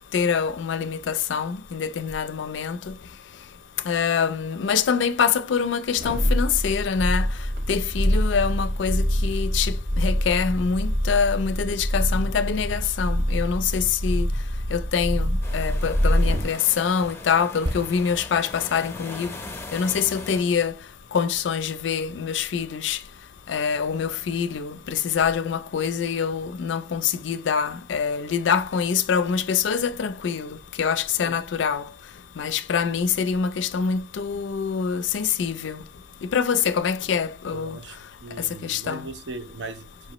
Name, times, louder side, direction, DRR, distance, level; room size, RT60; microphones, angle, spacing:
voice 1, 0.1-2.9 3.8-7.3 7.7-14.3 14.7-19.3 19.7-20.8 21.1-23.0 23.5-31.9 32.4-35.8 36.3-37.8 38.4-39.1, left 6 dB, 85° left, 0.4 m, -25 dB
sound 1, 5.9-16.6 17.0-17.1, equal, 65° right, 1.1 m, -25 dB
sound 2, 15.4-20.4, left 2 dB, 15° left, 0.6 m, -40 dB
sound 3, 17.7-21.3 21.6-21.8, equal, 25° right, 0.4 m, -37 dB
voice 2, 37.5-40.1, right 3 dB, 80° right, 0.6 m, -39 dB
4.6 x 2.9 x 2.9 m
head